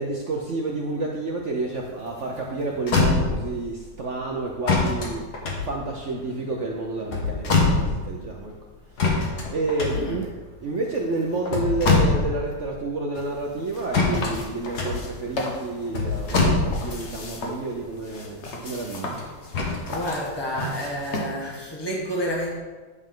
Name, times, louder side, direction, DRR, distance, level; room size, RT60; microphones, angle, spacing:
voice 1, 0.0-5.4 5.6-8.5 8.9-10.3 10.6-19.1, right 3 dB, 65° right, 0 dB, 0.7 m, -30 dB
sound 1, 2.4-2.5 2.7-3.6 4.7-6.3 6.9-8.2 9.0-10.4 11.3-12.5 12.8-12.9 13.9-17.1 19.2-20.0 20.6-20.7, left 3 dB, 60° left, 1.7 m, -23 dB
sound 2, 13.1-21.3, left 2 dB, 45° left, 1.1 m, -36 dB
voice 2, 19.8-22.6, equal, 15° left, -2 dB, 1.1 m, -29 dB
9.3 x 5.3 x 3.7 m, 1.3 s
omnidirectional pair, 2.0 m